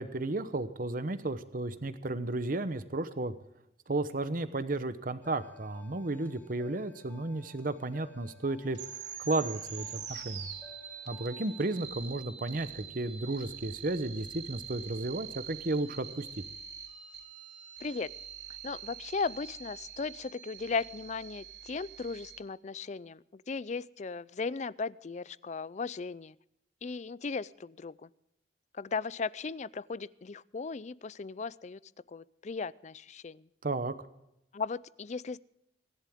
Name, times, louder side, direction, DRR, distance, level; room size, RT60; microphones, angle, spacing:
voice 1, 0.0-3.3 3.9-8.8 9.2-10.5 11.1-16.3 33.6-33.9, right 2 dB, 50° right, 11 dB, 0.9 m, -33 dB
sound 1, 5.2-11.8, left 4 dB, 10° left, 1.4 m, -56 dB
sound 2, 8.7-22.4, right 8 dB, 70° right, 3.8 m, -45 dB
voice 2, 17.8-18.1 18.6-26.4 26.8-28.1 28.7-31.8 32.1-33.4 34.5-35.4, left 4 dB, 40° left, 20 dB, 0.4 m, -37 dB
24.5 x 11.0 x 3.6 m, 0.83 s
head